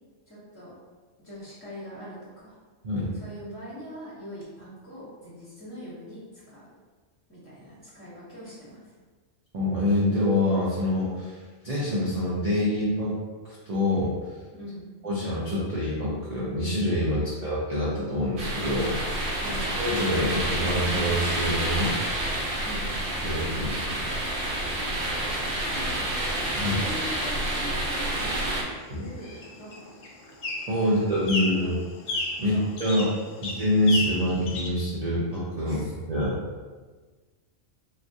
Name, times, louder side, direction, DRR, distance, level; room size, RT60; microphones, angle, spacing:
voice 1, 0.3-0.7 1.2-2.2 2.4-2.6 3.1-6.7 7.3-8.9 14.5-14.9 17.1-17.3 19.4-19.7 22.6-22.9 24.7-25.0 25.7-26.0 26.7-29.9 30.8-31.7 32.5-33.3 35.6-35.9, equal, 15° left, -10 dB, 0.7 m, -42 dB
voice 2, 9.5-13.1 13.4-14.1 15.0-19.4 19.8-22.0 23.2-24.0 26.5-26.8 28.9-29.0 30.7-31.7 32.4-33.1 33.4-35.8 36.1-36.4, left 1 dB, 45° right, -7 dB, 0.5 m, -26 dB
sound 1, 18.4-28.6, right 1 dB, 65° right, 0.9 m, -29 dB
sound 2, 25.5-34.7, left 2 dB, 70° left, 0.9 m, -36 dB
3.4 x 2.4 x 2.6 m, 1.3 s
omnidirectional pair, 1.3 m